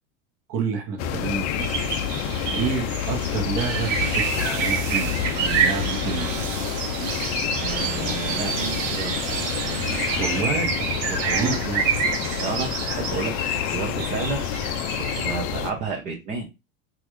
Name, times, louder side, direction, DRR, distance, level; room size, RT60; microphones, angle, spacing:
voice 1, 0.5-1.7 2.5-6.4 10.1-12.0, right 5 dB, 40° right, 1.1 m, -29 dB
sound 1, 1.0-15.7, left 9 dB, 45° left, 0.5 m, -28 dB
sound 2, 1.6-15.3, right 6 dB, 70° right, 1.5 m, -29 dB
sound 3, 3.6-10.4, right 7 dB, 90° right, 0.8 m, -34 dB
voice 2, 7.5-9.3 11.3-11.6 12.4-16.5, right 5 dB, 20° right, 0.4 m, -32 dB
3.8 x 2.4 x 3.1 m
supercardioid pair, 150°, 39 cm